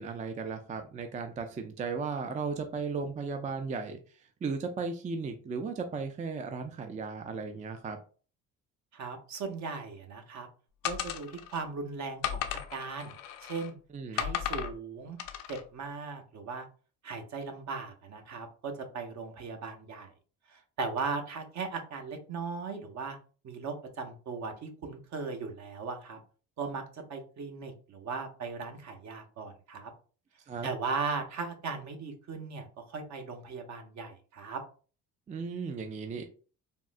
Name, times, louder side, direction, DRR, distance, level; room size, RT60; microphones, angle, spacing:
voice 1, 0.0-4.0 4.4-8.0 13.9-14.2 30.5-30.7 35.3-36.2, right 5 dB, 25° right, 6 dB, 0.3 m, -35 dB
voice 2, 8.9-10.5 10.8-12.4 12.7-13.8 14.1-15.2 15.5-16.7 17.0-20.1 20.5-23.2 23.4-26.2 26.6-29.9 30.6-34.6, right 4 dB, 55° right, 5 dB, 0.8 m, -38 dB
sound 1, 10.8-11.6 12.2-13.7 14.2-14.7 15.2-15.6, left 10 dB, 75° left, 0.5 m, -35 dB
3.5 x 2.0 x 2.5 m, 0.38 s
cardioid pair, 100°, 33 cm